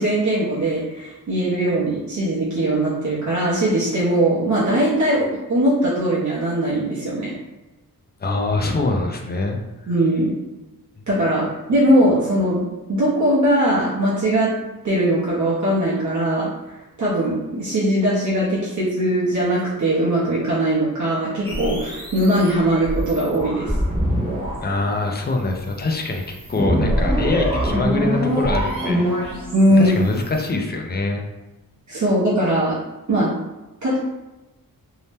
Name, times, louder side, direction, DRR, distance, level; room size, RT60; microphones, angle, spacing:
voice 1, 0.0-7.3 9.9-10.3 11.1-11.4 11.7-14.5 14.8-16.5 17.0-23.7 29.5-29.9 31.9-32.7 33.1-33.3 33.8-34.0, right 1 dB, 50° right, -7 dB, 0.7 m, -20 dB
voice 2, 8.2-9.6 24.6-29.0 29.8-31.2, left 2 dB, 30° left, 2 dB, 0.4 m, -24 dB
sound 1, 21.4-30.5, equal, 15° right, 0.7 m, -24 dB
2.7 x 2.1 x 3.3 m, 1.1 s
wide cardioid pair, 120°, 37 cm